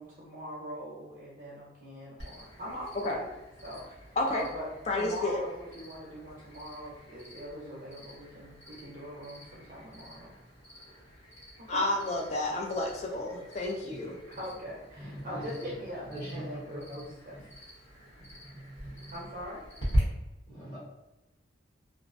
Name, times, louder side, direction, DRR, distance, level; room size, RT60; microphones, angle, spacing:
voice 1, 0.0-3.2 3.6-3.9 4.2-4.7 4.9-10.3 11.7-11.8 14.4-17.3 19.1-19.6, equal, 40° right, -6 dB, 0.5 m, -42 dB
Cricket, 2.2-20.0, equal, 90° left, 1.1 m, -42 dB
voice 2, 4.9-5.4 11.7-14.2, left 2 dB, 35° left, 0 dB, 0.4 m, -30 dB
voice 3, 15.0-15.7 16.0-17.0 17.3-17.4 18.2-19.1 20.5-20.8, right 1 dB, 15° left, -8 dB, 0.9 m, -42 dB
2.4 x 2.0 x 2.5 m, 0.98 s
head